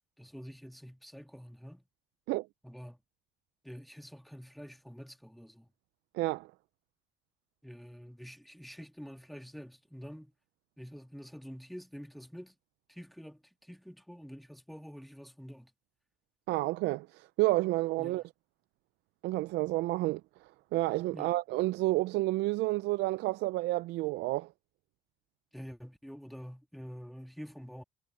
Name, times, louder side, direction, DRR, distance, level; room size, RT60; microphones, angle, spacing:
voice 1, 0.2-1.8 2.6-3.0 3.6-5.7 7.6-10.3 10.8-12.5 12.9-15.7 18.0-18.2 21.1-21.3 25.5-27.8, equal, ahead, 2.6 m, -47 dB
voice 2, 6.1-6.5 16.5-18.2 19.2-20.2 20.7-24.5, right 19 dB, 80° right, 0.4 m, -30 dB
cardioid pair, 110°, 17 cm